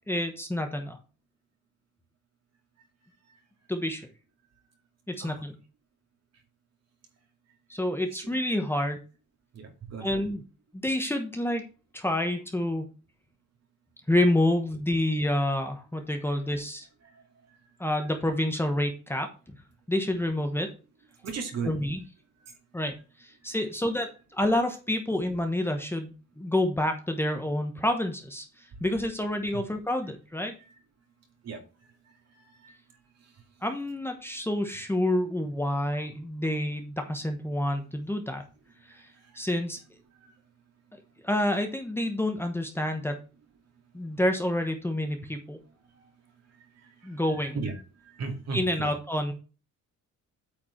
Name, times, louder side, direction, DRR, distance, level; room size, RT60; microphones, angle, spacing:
voice 1, 0.1-1.0 3.7-4.1 5.1-5.6 7.7-9.0 10.0-10.4 10.7-11.6 11.9-12.9 14.1-16.9 17.8-19.6 19.9-20.7 21.6-22.0 22.7-30.5 33.6-38.4 38.8-39.8 41.2-43.2 43.9-45.6 47.0-47.6 48.5-49.3, left 1 dB, 10° left, 5 dB, 1.1 m, -28 dB
voice 2, 9.5-10.1 17.0-17.2 18.0-18.1 21.2-21.7 22.4-22.5 29.5-29.6 30.7-30.8 31.4-31.6 32.4-32.7 39.3-39.4 40.2-40.3 47.0-48.9, right 4 dB, 55° right, 4 dB, 2.4 m, -37 dB
8.7 x 4.8 x 4.4 m, 0.33 s
cardioid pair, 145°, 30 cm